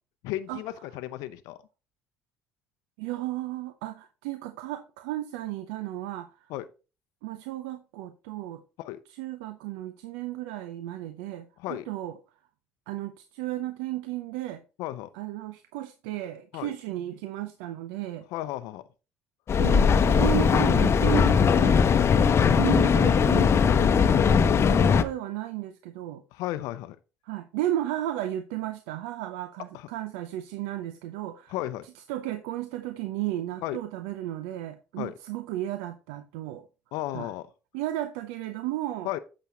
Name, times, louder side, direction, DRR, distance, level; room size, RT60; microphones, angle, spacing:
voice 1, 0.2-1.6 6.5-6.7 8.8-9.0 11.6-11.9 14.8-15.1 16.5-16.7 18.3-18.8 24.7-24.8 26.3-27.0 29.7-29.9 31.5-31.9 33.6-33.8 35.0-35.1 36.9-37.5 39.0-39.2, left 14 dB, 80° left, 0.6 m, -34 dB
voice 2, 3.0-6.3 7.2-8.6 9.1-12.2 12.9-14.6 15.1-18.2 19.6-21.9 22.5-26.2 27.2-31.6 32.1-36.6 37.1-37.3 37.7-39.1, right 14 dB, 90° right, 0.6 m, -34 dB
Mechanical fan, 19.5-25.0, left 6 dB, 50° left, 0.8 m, -20 dB
8.3 x 6.0 x 3.9 m
supercardioid pair, 65°, 6 cm